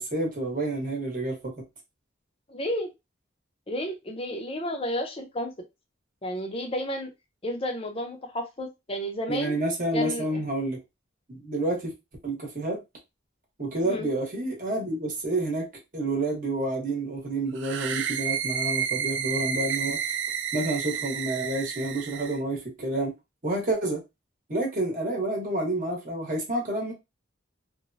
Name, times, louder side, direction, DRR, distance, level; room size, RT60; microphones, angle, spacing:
voice 1, 0.0-1.5 9.3-10.8 11.3-11.9 12.2-12.8 13.6-15.7 15.9-20.0 20.5-23.1 23.4-24.0 24.5-26.9, right 2 dB, 40° right, 1.1 m, -29 dB
voice 2, 2.5-2.9 3.7-5.5 6.2-7.1 7.4-9.6 9.9-10.4 13.8-14.1, equal, 30° left, 0.6 m, -31 dB
sound 1, 17.6-22.4, right 8 dB, 60° right, 0.4 m, -30 dB
3.1 x 2.1 x 2.6 m
head